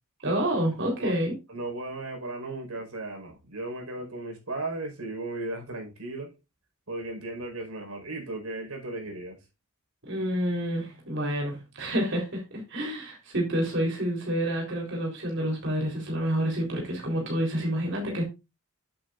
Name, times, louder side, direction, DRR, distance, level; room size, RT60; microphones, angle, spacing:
voice 1, 0.2-1.4 10.1-18.2, right 1 dB, 55° right, 4.0 m, -28 dB
voice 2, 1.5-6.3 6.9-9.4, right 2 dB, 85° right, 4.9 m, -36 dB
10.5 x 8.5 x 2.6 m
head